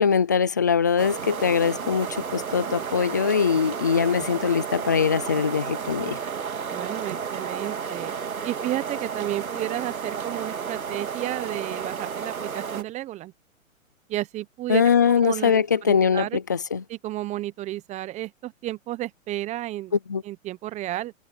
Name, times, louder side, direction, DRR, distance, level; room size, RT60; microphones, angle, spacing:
voice 1, 0.0-6.2 14.7-16.8 20.1-20.2, left 6 dB, 15° left, 0.3 m, -22 dB
sound 1, 1.0-12.8, right 6 dB, 90° right, 2.5 m, -32 dB
voice 2, 6.7-8.1 8.4-13.3 14.1-16.4 16.9-20.0 20.2-21.1, right 15 dB, 15° right, 1.0 m, -32 dB
hypercardioid pair, 135°, 41 cm